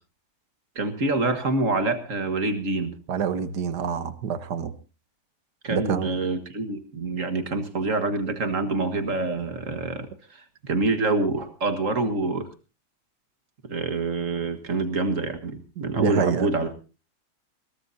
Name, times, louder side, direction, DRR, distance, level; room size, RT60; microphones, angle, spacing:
voice 1, 0.8-2.9 5.6-12.5 13.6-16.7, right 3 dB, 50° right, 8 dB, 1.9 m, -26 dB
voice 2, 3.1-4.7 5.7-6.1 15.8-16.5, right 7 dB, 80° right, 12 dB, 1.7 m, -27 dB
21.5 x 18.5 x 2.7 m, 0.33 s
omnidirectional pair, 1.8 m